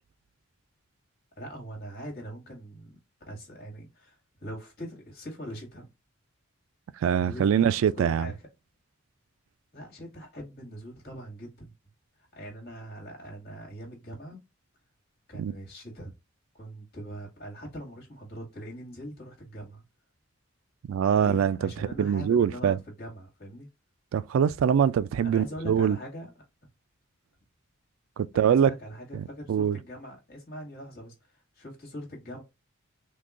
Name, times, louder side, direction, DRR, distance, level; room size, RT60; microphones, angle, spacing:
voice 1, 1.4-3.0 3.3-5.9 7.1-8.5 9.7-11.7 12.2-14.4 15.3-16.1 16.5-19.8 21.1-23.7 25.2-26.3 28.3-32.4, equal, 50° left, 1.9 m, -42 dB
voice 2, 7.0-8.3 15.4-15.5 20.9-21.7 22.0-22.8 24.1-26.0 28.2-28.7 29.5-29.8, right 8 dB, 75° right, 0.3 m, -23 dB
3.8 x 2.9 x 2.4 m
head